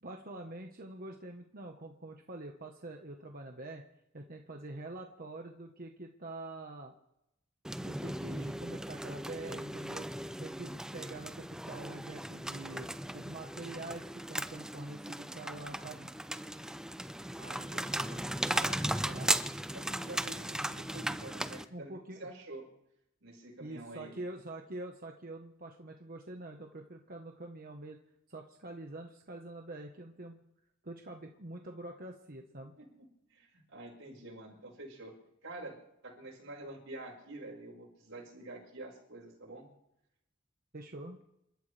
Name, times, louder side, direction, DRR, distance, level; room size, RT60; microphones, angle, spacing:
voice 1, 0.0-3.8 4.1-6.9 7.8-10.1 10.4-12.9 13.1-16.1 19.1-19.4 21.7-22.3 23.6-28.0 28.3-30.4 30.8-32.7 40.7-41.2, right 2 dB, 45° right, 2 dB, 1.3 m, -45 dB
sound 1, 7.6-21.6, right 1 dB, 5° right, 0.5 m, -37 dB
voice 2, 17.4-19.4 19.7-21.9 22.2-22.7 23.2-24.2 32.8-32.9 33.3-35.1 35.4-39.7, right 2 dB, 80° right, -1 dB, 5.4 m, -48 dB
28.5 x 13.5 x 3.4 m, 0.82 s
head